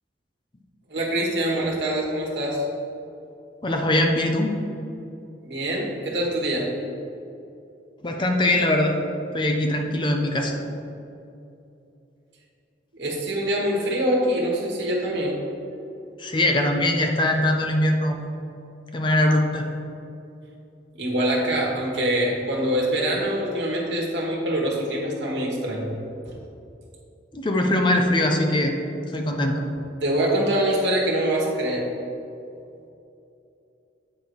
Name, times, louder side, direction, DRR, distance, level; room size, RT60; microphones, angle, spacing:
voice 1, 0.9-2.6 5.4-6.7 12.9-15.4 21.0-25.9 30.0-31.9, right 1 dB, 70° right, -3 dB, 1.4 m, -24 dB
voice 2, 3.6-4.6 8.0-9.0 9.3-10.6 16.2-18.2 18.9-19.7 27.3-28.8 29.1-29.6, left 1 dB, 25° left, 3 dB, 0.6 m, -22 dB
8.5 x 4.0 x 4.7 m, 2.7 s
head